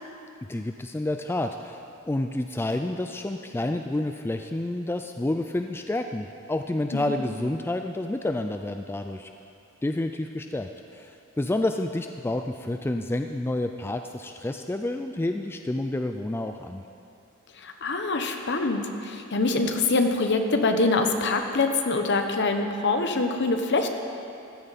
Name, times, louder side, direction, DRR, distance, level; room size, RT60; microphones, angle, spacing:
voice 1, 0.5-1.8 2.0-9.3 9.8-16.8, left 1 dB, 10° left, 6 dB, 0.3 m, -29 dB
voice 2, 6.9-7.2 17.6-23.9, left 3 dB, 55° left, 5 dB, 1.0 m, -24 dB
14.5 x 12.5 x 4.1 m, 2.6 s
head